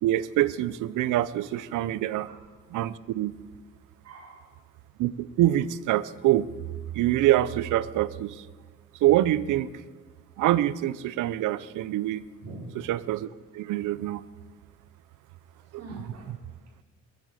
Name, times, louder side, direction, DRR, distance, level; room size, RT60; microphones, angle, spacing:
voice 1, 0.0-2.3 2.7-3.4 5.0-6.5 6.9-8.5 9.0-9.7 10.4-12.2 12.7-13.3 13.5-14.2 15.7-15.8, right 14 dB, 85° right, 18 dB, 0.7 m, -25 dB
voice 2, 4.0-4.5 12.4-12.7 15.5-16.3, right 2 dB, 55° right, -2 dB, 5.2 m, -44 dB
21.0 x 8.6 x 7.5 m, 1.4 s
cardioid pair, 90°, 30 cm